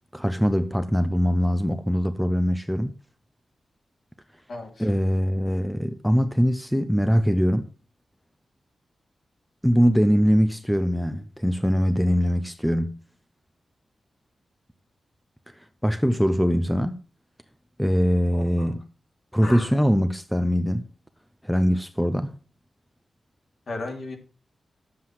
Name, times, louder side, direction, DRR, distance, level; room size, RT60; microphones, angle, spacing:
voice 1, 0.1-2.9 4.8-7.7 9.6-13.0 15.8-17.0 17.8-18.9 19.3-20.9 21.4-22.3, equal, ahead, 0.6 m, -22 dB
voice 2, 4.5-4.9 18.3-18.7 19.4-19.7 23.7-24.2, left 2 dB, 50° left, 3.0 m, -34 dB
11.5 x 7.7 x 5.9 m
wide cardioid pair, 165°, 0 cm